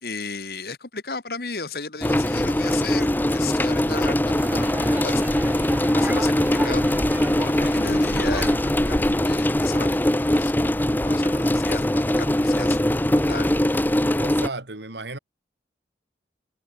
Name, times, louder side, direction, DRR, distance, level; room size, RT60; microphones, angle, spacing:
voice 1, 0.0-10.5 11.0-13.7, left 4 dB, 60° left, 1.7 m, -35 dB
sound 1, 2.0-14.5, left 1 dB, 10° left, 0.7 m, -22 dB
sound 2, 4.4-9.3, right 1 dB, 10° right, 1.6 m, -33 dB
voice 2, 14.2-15.2, right 3 dB, 80° right, 2.8 m, -34 dB
head